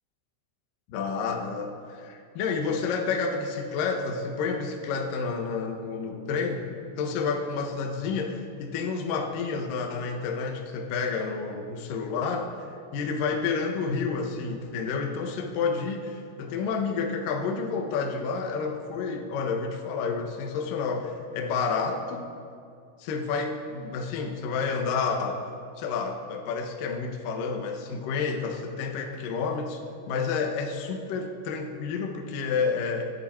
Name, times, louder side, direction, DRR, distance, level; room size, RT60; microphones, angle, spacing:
voice 1, 0.9-22.3 23.0-25.4 25.8-33.0, left 5 dB, 75° left, 2 dB, 2.0 m, -30 dB
25.5 x 11.0 x 4.4 m, 2.4 s
omnidirectional pair, 5.7 m